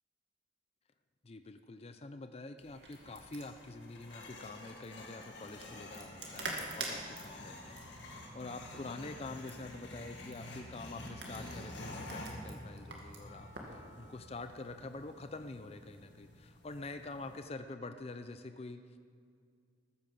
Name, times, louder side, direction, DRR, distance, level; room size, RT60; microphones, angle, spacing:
voice 1, 1.2-19.0, left 2 dB, 35° left, 8 dB, 0.5 m, -46 dB
sound 1, 2.6-17.4, left 1 dB, 70° left, 2.0 m, -49 dB
sound 2, 2.6-13.8, right 3 dB, 65° right, 2.2 m, -47 dB
14.0 x 14.0 x 5.3 m, 2.3 s
head